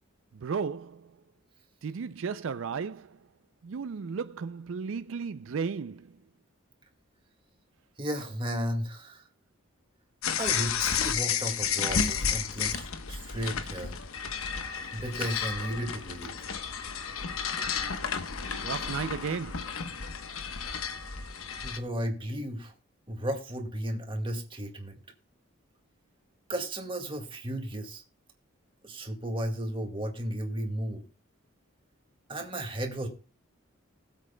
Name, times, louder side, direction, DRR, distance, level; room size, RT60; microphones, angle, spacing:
voice 1, 0.3-1.2 1.8-3.3 3.6-6.2 18.6-19.8, right 5 dB, 65° right, 0.4 m, -34 dB
voice 2, 8.0-9.2 10.4-13.9 14.9-16.3 21.6-22.7 23.1-25.0 26.5-28.0 28.8-31.0 32.3-33.1, right 1 dB, 25° right, 1.9 m, -34 dB
sound 1, 10.2-21.8, left 7 dB, 80° left, 1.1 m, -32 dB
20.5 x 8.1 x 2.2 m
head